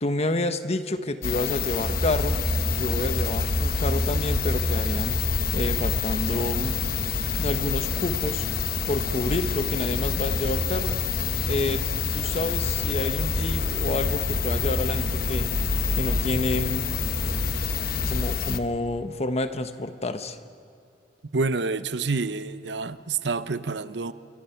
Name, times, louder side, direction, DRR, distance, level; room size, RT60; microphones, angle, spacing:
voice 1, 0.0-2.4 2.7-5.2 5.5-6.8 7.4-8.5 8.9-11.0 11.4-11.8 12.1-15.5 15.9-16.9 18.1-20.4, left 2 dB, 35° left, 10 dB, 1.1 m, -29 dB
sound 1, 1.2-18.6, left 6 dB, 55° left, 1.0 m, -28 dB
sound 2, 1.7-18.3, equal, 35° right, 3.4 m, -31 dB
voice 2, 21.3-24.1, right 4 dB, 80° right, 13 dB, 0.8 m, -28 dB
27.0 x 23.5 x 5.9 m, 2.5 s
head